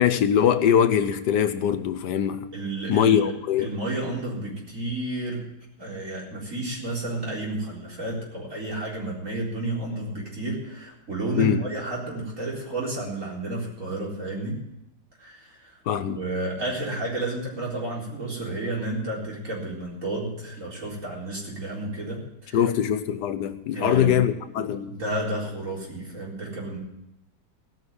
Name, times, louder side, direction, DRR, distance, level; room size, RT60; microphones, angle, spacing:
voice 1, 0.0-2.5 2.9-3.7 11.4-11.6 15.9-16.2 22.5-25.0, left 9 dB, 75° left, 1.4 m, -22 dB
voice 2, 2.5-3.3 3.6-5.4 5.8-14.6 15.2-15.8 16.1-22.7 23.7-24.2 24.9-26.8, right 2 dB, 45° right, 4.5 m, -31 dB
17.5 x 6.2 x 9.6 m
omnidirectional pair, 1.8 m